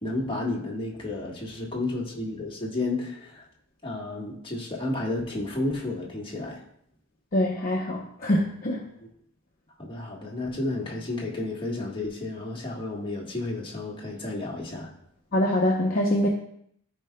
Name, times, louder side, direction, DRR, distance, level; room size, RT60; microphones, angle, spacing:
voice 1, 0.0-3.4 3.8-6.6 9.0-9.1 9.8-14.9, left 2 dB, 25° left, -3 dB, 1.4 m, -32 dB
voice 2, 7.3-8.8 15.3-16.3, left 1 dB, 45° left, -1 dB, 0.8 m, -24 dB
14.0 x 4.6 x 2.3 m, 0.69 s
head